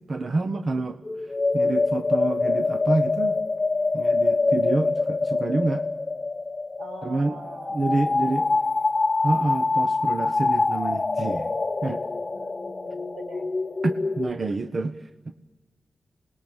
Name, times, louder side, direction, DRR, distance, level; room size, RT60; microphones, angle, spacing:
voice 1, 0.0-3.4 3.9-5.9 7.0-7.4 7.7-8.5 9.2-11.5 11.8-12.0 13.8-15.3, right 3 dB, 55° right, 10 dB, 1.0 m, -28 dB
sound 1, 1.0-14.3, left 3 dB, 35° left, 0.8 m, -25 dB
voice 2, 6.8-8.6 12.1-13.5, right 1 dB, 90° right, 4 dB, 4.6 m, -43 dB
27.0 x 20.0 x 8.9 m, 1.2 s
wide cardioid pair, 85°, 0 cm